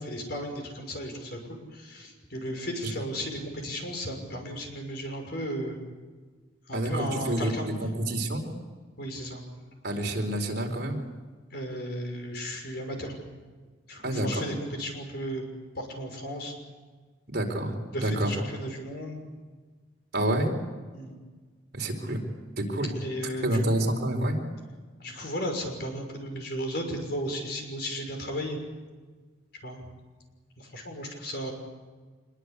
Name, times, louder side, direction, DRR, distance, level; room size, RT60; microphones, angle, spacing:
voice 1, 0.0-1.6 1.8-5.8 6.7-7.7 9.0-9.4 11.5-13.1 13.9-15.4 15.8-16.5 17.9-19.2 20.9-21.1 23.0-23.4 23.7-23.8 25.0-28.6 29.6-29.8 30.7-31.5, equal, 55° left, 3 dB, 6.2 m, -35 dB
voice 2, 6.7-8.4 9.8-11.0 14.0-14.5 17.3-18.4 20.1-20.5 21.7-22.2 22.6-22.9 23.2-24.4, right 1 dB, 55° right, 2 dB, 4.4 m, -28 dB
25.5 x 22.0 x 8.3 m, 1.4 s
head